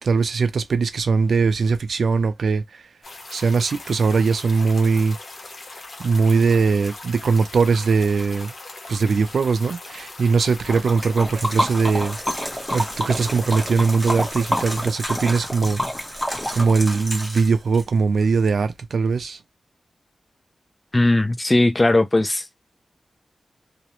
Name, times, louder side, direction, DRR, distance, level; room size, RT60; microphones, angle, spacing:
voice 1, 0.0-2.8 3.3-5.2 6.0-8.5 8.9-12.2 12.7-15.8 16.5-19.4, right 4 dB, 80° right, 0.4 m, -20 dB
sound 1, 3.0-14.9, left 2 dB, 65° left, 0.8 m, -40 dB
Liquid, 10.7-17.8, equal, 5° left, 0.9 m, -28 dB
voice 2, 20.9-22.4, left 2 dB, 25° left, 0.4 m, -18 dB
2.3 x 2.1 x 2.9 m
wide cardioid pair, 70°, 0 cm